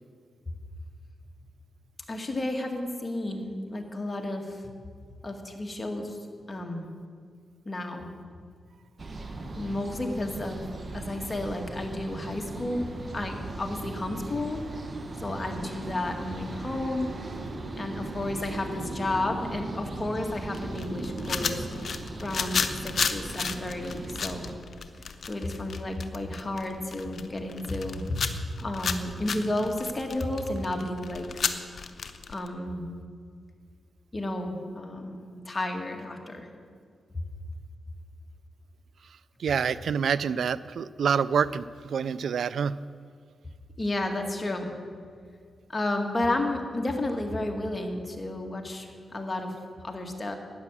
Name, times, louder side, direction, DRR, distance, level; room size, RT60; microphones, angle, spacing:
voice 1, 2.1-4.6 5.2-6.2 6.5-6.9 7.7-8.1 9.6-10.6 10.9-12.8 13.1-14.6 15.2-17.1 17.8-21.6 22.2-24.5 25.3-28.3 28.6-31.5 32.3-33.0 34.1-36.5 43.8-44.7 45.7-49.5 49.8-50.4, left 1 dB, 30° left, 3 dB, 2.0 m, -32 dB
sound 1, 9.0-24.6, right 2 dB, 45° right, 1.4 m, -38 dB
sound 2, 20.5-32.5, left 5 dB, 65° left, 0.8 m, -32 dB
voice 2, 39.4-42.8, right 7 dB, 80° right, 17 dB, 0.3 m, -27 dB
12.0 x 9.5 x 7.5 m, 2.1 s
cardioid pair, 65°, 0 cm